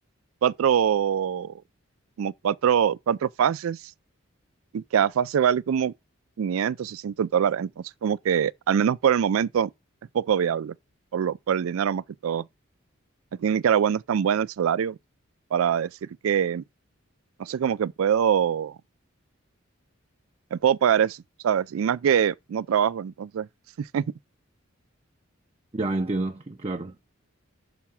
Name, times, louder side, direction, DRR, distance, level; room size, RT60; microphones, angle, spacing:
voice 1, 0.4-1.5 2.2-3.8 4.7-5.9 6.4-9.7 10.1-10.7 11.1-12.5 13.4-15.0 15.5-15.9 16.2-16.6 17.4-18.8 20.5-21.2 21.4-23.5 23.8-24.0, right 8 dB, 90° right, 0.4 m, -24 dB
voice 2, 25.7-27.0, right 2 dB, 30° right, 0.5 m, -29 dB
5.9 x 5.7 x 5.6 m
head